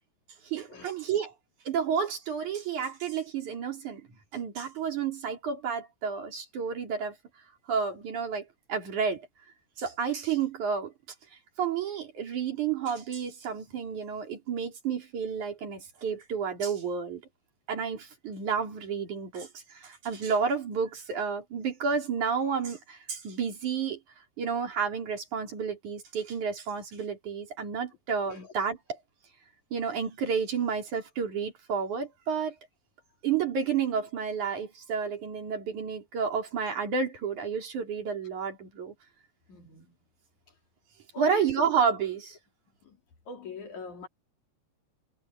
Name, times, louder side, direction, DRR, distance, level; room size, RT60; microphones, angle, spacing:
voice 1, 0.4-1.3 1.7-4.0 4.3-7.2 7.7-9.2 9.8-10.9 11.6-17.2 17.7-24.0 24.4-29.0 29.7-32.6 33.2-38.9 41.2-42.4, right 6 dB, 80° right, 5.2 m, -31 dB
voice 2, 39.5-39.9 41.1-41.7 42.8-43.0 43.3-44.1, left 6 dB, 75° left, 4.9 m, -42 dB
omnidirectional pair, 3.4 m